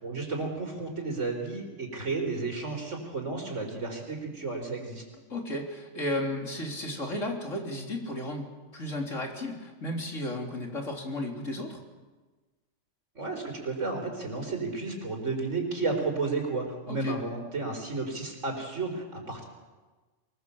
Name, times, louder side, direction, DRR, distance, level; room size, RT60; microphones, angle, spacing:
voice 1, 0.0-5.0 13.1-19.4, right 3 dB, 75° right, 2 dB, 4.7 m, -32 dB
voice 2, 5.3-11.8 16.9-17.2, left 1 dB, 80° left, 1 dB, 3.7 m, -34 dB
23.5 x 21.0 x 7.2 m, 1.3 s
omnidirectional pair, 1.3 m